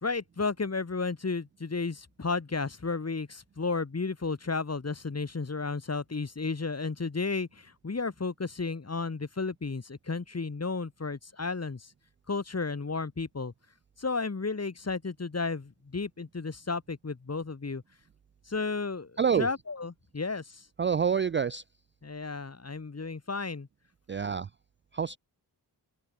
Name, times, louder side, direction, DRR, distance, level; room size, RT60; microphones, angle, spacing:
voice 1, 0.0-11.9 12.3-13.5 14.0-17.8 18.5-20.6 22.0-23.7, left 4 dB, 35° left, 3.1 m, -33 dB
voice 2, 19.2-19.5 20.8-21.6 24.1-24.5 24.9-25.2, right 7 dB, 30° right, 0.4 m, -27 dB
open air
cardioid pair, 55°, 42 cm